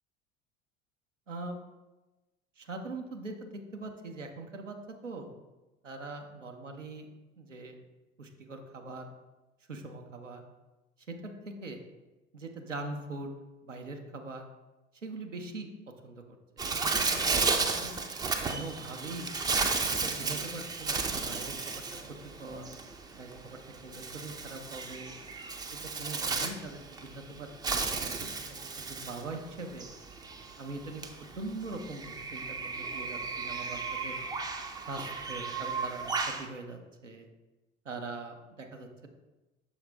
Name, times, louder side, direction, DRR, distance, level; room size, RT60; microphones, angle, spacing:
voice 1, 1.3-1.6 2.6-5.3 5.8-7.1 7.4-7.8 8.2-9.1 9.7-10.4 11.1-11.8 12.3-13.3 13.6-14.5 15.0-15.7 16.0-17.9 18.5-19.4 19.9-21.8 22.4-22.7 23.2-25.2 25.7-29.9 30.6-31.0 31.4-34.2 34.8-37.3 37.8-39.1, right 2 dB, 85° right, 3 dB, 0.6 m, -42 dB
Bird, 16.6-36.5, right 4 dB, 10° right, 0.4 m, -34 dB
6.1 x 4.8 x 3.2 m, 1.1 s
figure-of-eight pair, 65°, 36 cm